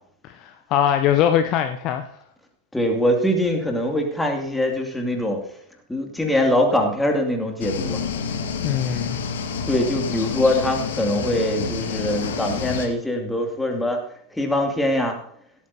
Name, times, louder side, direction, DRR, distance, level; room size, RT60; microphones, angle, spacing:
voice 1, 0.2-2.1 8.6-9.2, left 10 dB, 40° left, 8 dB, 0.7 m, -22 dB
voice 2, 2.7-5.4 5.9-8.0 9.7-14.0 14.3-15.2, left 1 dB, 5° left, 2 dB, 2.4 m, -22 dB
sound 1, 7.6-12.9, left 6 dB, 60° left, 1.6 m, -28 dB
17.0 x 13.0 x 2.8 m, 0.69 s
figure-of-eight pair, 90°, 0 cm